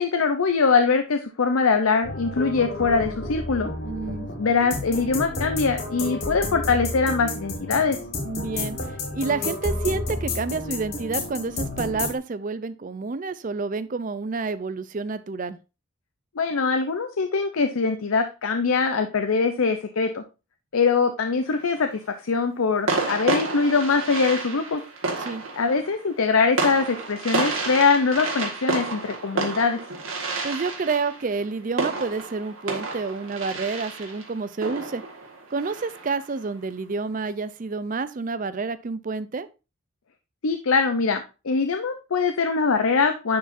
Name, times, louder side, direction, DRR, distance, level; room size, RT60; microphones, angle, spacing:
voice 1, 0.0-3.7 4.4-8.0 16.4-20.2 20.7-24.8 25.6-29.8 40.4-43.4, left 4 dB, 85° left, 7 dB, 0.6 m, -22 dB
sound 1, 2.0-12.2, left 2 dB, 50° left, 1.4 m, -31 dB
voice 2, 3.8-4.3 8.2-15.6 25.2-25.4 30.4-35.0 35.5-39.5, right 4 dB, 40° right, 14 dB, 0.4 m, -29 dB
sound 2, 21.4-22.0 22.9-36.3, right 3 dB, 80° right, 1.8 m, -30 dB
10.0 x 4.8 x 2.6 m, 0.30 s
head